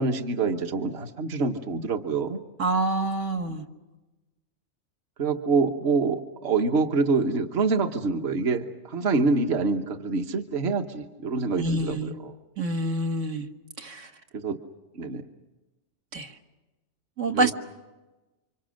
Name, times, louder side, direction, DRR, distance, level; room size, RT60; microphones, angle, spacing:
voice 1, 0.0-2.4 5.2-12.4 14.3-14.6 14.9-15.3 17.3-17.5, right 4 dB, 60° right, 5 dB, 1.5 m, -26 dB
voice 2, 2.6-3.6 11.6-12.1 12.6-13.5 13.8-14.1 16.1-16.3 17.2-17.5, right 2 dB, 90° right, 4 dB, 2.0 m, -26 dB
30.0 x 25.5 x 6.4 m, 1.1 s
omnidirectional pair, 1.2 m